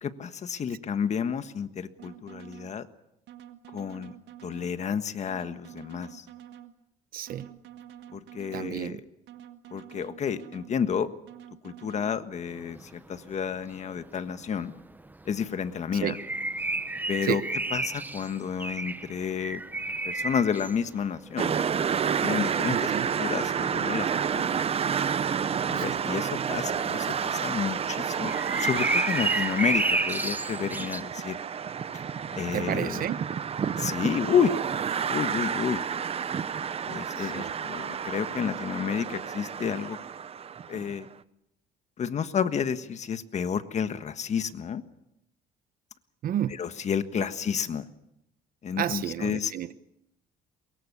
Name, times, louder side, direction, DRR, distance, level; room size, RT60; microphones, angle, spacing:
voice 1, 0.0-2.9 3.7-4.1 4.4-6.3 8.1-9.0 9.7-11.1 11.6-14.7 15.2-16.2 17.1-17.4 17.7-19.6 20.0-21.6 22.2-22.9 23.2-24.5 25.7-28.3 28.6-31.4 32.4-33.1 33.8-34.5 35.0-35.8 36.8-40.0 40.7-41.1 42.0-44.8 46.6-47.9 48.6-49.5, left 7 dB, 45° left, 11 dB, 1.5 m, -30 dB
sound 1, 2.0-2.7 3.3-4.7 5.3-6.7 7.3-8.7 9.3-10.7 11.3-12.2, right 11 dB, 85° right, 1.7 m, -47 dB
voice 2, 7.1-7.5 8.5-9.0 16.0-16.1 17.2-17.4 22.7-23.1 25.7-26.0 32.5-33.2 37.2-37.5 46.2-46.6 48.8-49.7, right 10 dB, 60° right, 14 dB, 1.1 m, -31 dB
sound 2, 12.5-13.1 13.3-13.4 13.6-25.8 26.3-26.8 27.1-27.2 27.4-31.0, right 2 dB, 10° right, 1.0 m, -31 dB
sound 3, 21.4-40.9, right 7 dB, 35° right, 0.8 m, -30 dB
23.0 x 22.0 x 7.0 m, 0.83 s
cardioid pair, 110°, 17 cm